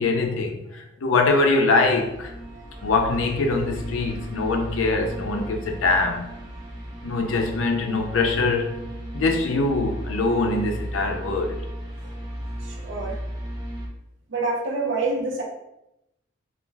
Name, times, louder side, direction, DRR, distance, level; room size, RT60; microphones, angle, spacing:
voice 1, 0.0-2.3 2.8-6.3 7.0-8.7 9.1-11.6, left 3 dB, 75° left, 0.4 m, -23 dB
sound 1, 1.8-13.9, right 1 dB, 20° right, 0.4 m, -35 dB
voice 2, 12.6-13.2 14.3-15.4, right 3 dB, 65° right, 0.6 m, -27 dB
2.4 x 2.2 x 3.2 m
head